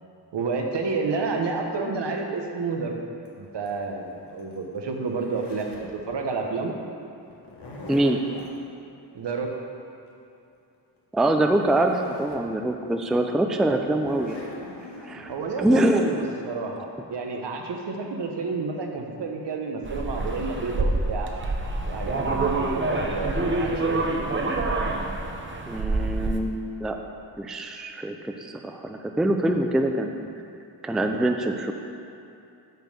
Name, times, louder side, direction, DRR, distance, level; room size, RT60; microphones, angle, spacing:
voice 1, 0.3-3.0 3.4-6.8 9.1-9.6 15.3-21.3 21.8-24.3, right 4 dB, 70° right, 2 dB, 0.9 m, -30 dB
Zipper (clothing), 3.3-6.0 7.3-8.6 11.2-11.3 11.5-12.5 13.0-13.1 13.8-15.8, left 2 dB, 60° left, 1.3 m, -43 dB
voice 2, 7.9-8.2 11.1-14.4 15.0-15.3 15.6-16.3 25.7-27.0 27.4-30.3 30.8-31.7, right 1 dB, ahead, 4 dB, 0.4 m, -24 dB
sound 1, 19.8-26.4, right 2 dB, 25° right, 0.7 m, -27 dB
6.6 x 4.2 x 6.4 m, 2.7 s
cardioid pair, 70°, 44 cm